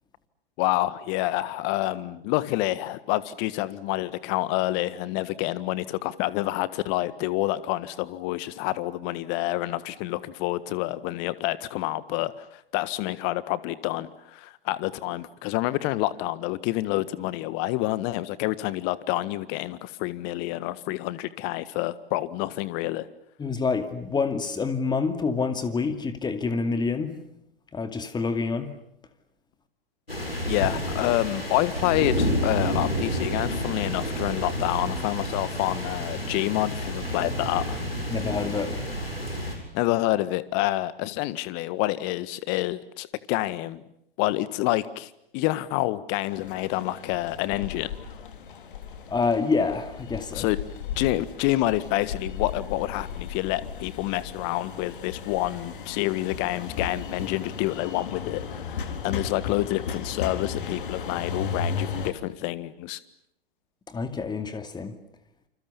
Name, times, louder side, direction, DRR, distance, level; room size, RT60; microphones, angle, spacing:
voice 1, 0.6-23.1 30.5-37.8 39.7-43.8 44.2-47.9 50.3-50.6 51.0-63.0, left 17 dB, 40° left, 1.6 m, -28 dB
voice 2, 23.4-27.1 27.7-28.8 38.1-38.8 49.1-50.5 63.9-65.0, left 4 dB, 15° left, 2.4 m, -27 dB
sound 1, 30.1-39.6, equal, 90° left, 7.5 m, -29 dB
sound 2, 46.3-62.1, left 6 dB, 60° left, 3.7 m, -35 dB
29.0 x 27.5 x 7.1 m
figure-of-eight pair, 100°, 29 cm